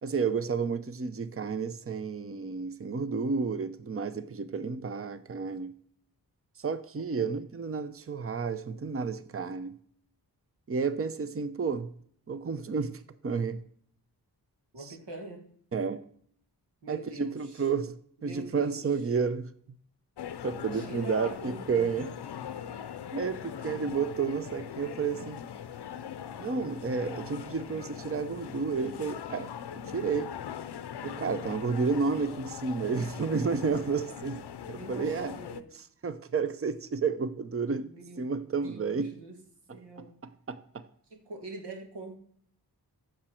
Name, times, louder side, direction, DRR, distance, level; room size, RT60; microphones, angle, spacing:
voice 1, 0.0-5.7 6.6-9.7 10.7-11.9 12.3-13.6 15.7-16.0 16.9-18.0 18.2-19.8 20.4-22.1 23.1-25.4 26.4-30.3 31.0-35.4 36.0-37.9 38.2-39.1 40.5-40.8, right 5 dB, 35° right, 0.7 m, -31 dB
voice 2, 7.0-7.3 10.9-11.0 14.7-15.5 16.8-17.7 18.2-18.9 20.7-22.2 23.6-23.8 34.7-35.7 37.7-38.3 38.6-39.4 39.7-40.2 41.1-42.2, right 2 dB, 90° right, 2.0 m, -45 dB
sound 1, 20.2-35.6, left 8 dB, 80° left, 0.7 m, -41 dB
14.5 x 6.2 x 4.4 m
wide cardioid pair, 70°, 39 cm